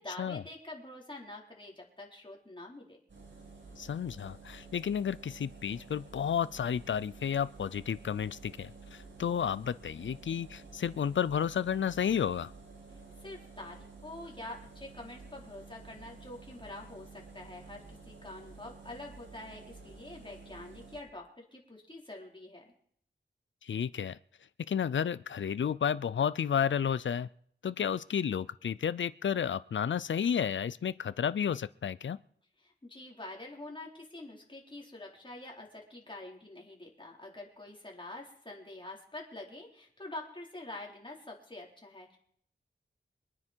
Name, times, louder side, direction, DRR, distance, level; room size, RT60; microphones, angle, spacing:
voice 1, 0.0-3.0 12.9-22.6 32.6-42.2, left 2 dB, 25° left, -1 dB, 4.3 m, -46 dB
sound 1, 3.1-21.0, right 4 dB, 70° right, 6.4 m, -51 dB
voice 2, 3.8-12.5 23.6-24.2 24.7-27.3 27.6-32.2, left 8 dB, 70° left, 18 dB, 0.5 m, -32 dB
24.0 x 9.6 x 4.6 m, 0.63 s
wide cardioid pair, 55°, 20 cm